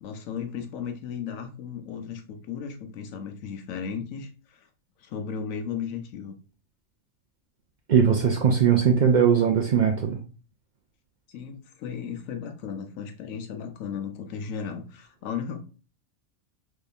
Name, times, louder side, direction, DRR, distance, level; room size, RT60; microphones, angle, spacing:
voice 1, 0.0-4.7 5.0-6.4 11.3-15.6, left 7 dB, 85° left, 6 dB, 1.1 m, -35 dB
voice 2, 7.9-10.2, right 7 dB, 70° right, 3 dB, 0.4 m, -20 dB
3.6 x 3.2 x 2.5 m, 0.34 s
omnidirectional pair, 1.4 m